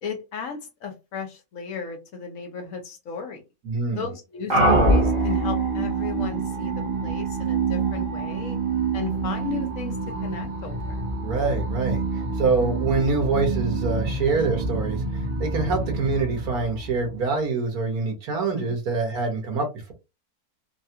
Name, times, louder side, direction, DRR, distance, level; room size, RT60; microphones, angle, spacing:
voice 1, 0.0-3.4 3.9-8.6 8.9-11.1 18.5-18.8, left 6 dB, 65° left, 1.1 m, -35 dB
voice 2, 3.6-4.1 11.2-19.9, right 4 dB, 75° right, 1.6 m, -25 dB
sound 1, 4.5-17.4, right 2 dB, 40° right, 0.9 m, -26 dB
3.4 x 2.3 x 2.7 m
omnidirectional pair, 1.6 m